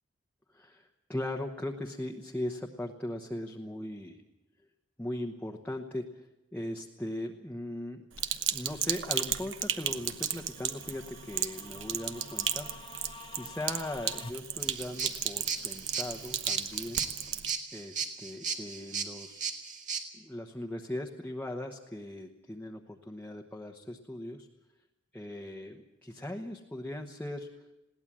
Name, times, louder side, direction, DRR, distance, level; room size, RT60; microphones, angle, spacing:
voice 1, 0.5-4.2 5.0-8.0 8.5-12.7 13.0-17.1 17.7-19.5 20.1-24.5 25.1-27.5, left 1 dB, 10° left, 1 dB, 1.1 m, -39 dB
Sink (filling or washing), 8.2-17.5, right 10 dB, 65° right, 1.1 m, -35 dB
sound 1, 9.9-14.3, left 4 dB, 25° left, 0.8 m, -49 dB
sound 2, 14.6-20.0, right 6 dB, 40° right, 2.0 m, -36 dB
21.0 x 17.0 x 7.5 m, 0.95 s
head